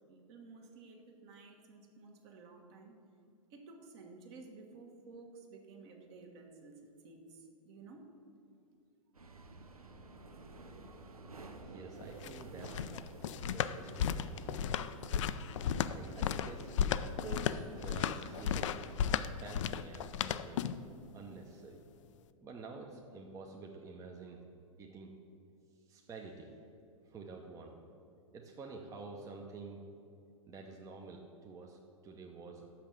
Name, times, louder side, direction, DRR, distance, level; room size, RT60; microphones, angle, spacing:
voice 1, 0.0-2.9 3.5-8.1, right 3 dB, 50° right, 3 dB, 1.3 m, -54 dB
sound 1, 9.1-19.0, right 3 dB, 90° right, 0.7 m, -51 dB
voice 2, 11.7-12.9 13.5-14.1 15.8-16.7 17.2-18.8 19.4-20.7 21.1-21.8 22.4-24.4 24.8-25.1 25.9-26.5 27.1-27.7 28.3-29.8 30.5-32.7, right 4 dB, 20° right, 1 dB, 0.7 m, -49 dB
sound 2, 12.0-20.9, left 8 dB, 60° left, 0.4 m, -35 dB
6.2 x 5.9 x 7.0 m, 2.5 s
figure-of-eight pair, 105°, 18 cm